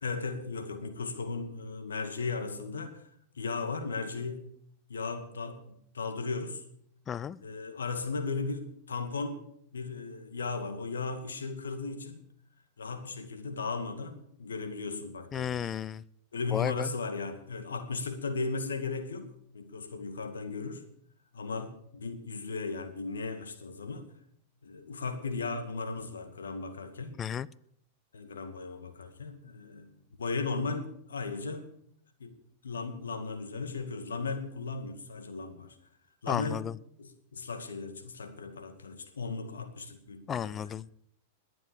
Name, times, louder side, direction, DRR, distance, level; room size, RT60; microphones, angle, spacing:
voice 1, 0.0-3.1 3.4-4.5 4.9-6.6 7.4-9.4 9.7-12.2 12.8-15.7 16.3-19.3 19.5-20.8 21.3-24.1 24.6-27.2 28.1-29.9 30.2-31.7 32.2-32.4 32.6-35.8 36.2-36.6 37.0-40.5, left 4 dB, 80° left, 2.3 m, -36 dB
voice 2, 7.1-7.4 15.3-16.0 16.5-16.9 27.2-27.5 36.3-36.7 40.3-40.9, left 8 dB, 25° left, 0.5 m, -33 dB
21.0 x 7.8 x 7.0 m
hypercardioid pair, 95°, 0 cm